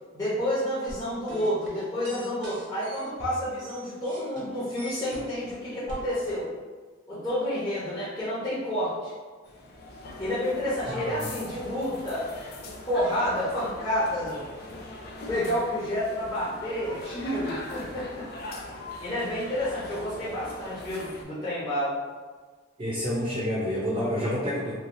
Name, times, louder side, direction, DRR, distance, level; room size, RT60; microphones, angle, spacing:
voice 1, 0.1-6.5 7.1-9.1 10.2-12.3 12.9-14.4 15.3-18.3 19.0-22.0, equal, 20° left, -13 dB, 0.8 m, -29 dB
sound 1, 0.9-5.5 5.9-6.4, right 1 dB, 70° right, 0.9 m, -43 dB
sound 2, 9.5-21.2, left 2 dB, 55° left, 0.4 m, -41 dB
voice 2, 10.9-11.3 22.8-24.7, equal, 30° right, -7 dB, 0.6 m, -29 dB
3.2 x 2.3 x 2.6 m, 1.4 s
head